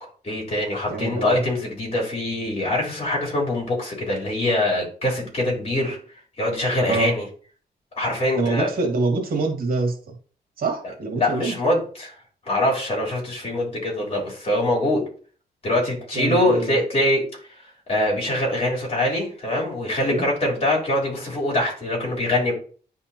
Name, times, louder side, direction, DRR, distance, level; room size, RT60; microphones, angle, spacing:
voice 1, 0.2-6.0 6.4-7.3 7.9-8.7 11.2-12.2 12.5-15.0 15.6-17.2 17.9-22.5, left 1 dB, 35° left, -2 dB, 3.5 m, -23 dB
voice 2, 0.8-1.4 6.9-7.1 8.4-10.1 10.6-11.6 16.1-16.7 20.1-20.3, right 3 dB, 60° right, 2 dB, 1.7 m, -25 dB
10.0 x 3.7 x 2.8 m, 0.42 s
cardioid pair, 105°, 17 cm